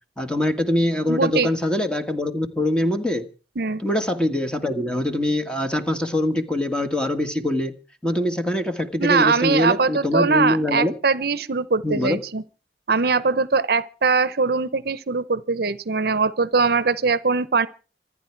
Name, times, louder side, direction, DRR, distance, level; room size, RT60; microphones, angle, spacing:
voice 1, 0.2-3.3 3.8-7.7 8.0-10.9 11.8-12.2, left 1 dB, 5° left, 1.6 m, -23 dB
voice 2, 1.1-1.5 3.6-3.8 9.0-12.4 12.9-17.7, right 4 dB, 60° right, 0.8 m, -21 dB
26.0 x 9.9 x 4.6 m
head